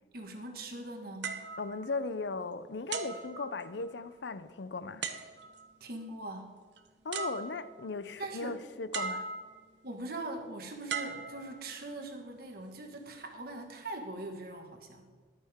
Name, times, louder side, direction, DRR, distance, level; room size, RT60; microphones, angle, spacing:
voice 1, 0.1-1.4 5.8-6.5 8.2-8.6 9.8-15.1, right 2 dB, 60° right, 1.7 m, -41 dB
sound 1, 1.2-2.4 2.9-4.1 5.0-5.7 6.8-6.9 7.1-7.9 8.9-9.7 10.9-12.0 12.7-13.0, right 5 dB, 85° right, 0.9 m, -39 dB
voice 2, 1.6-5.1 7.0-9.3, left 3 dB, 90° left, 0.6 m, -37 dB
14.0 x 11.5 x 3.6 m
head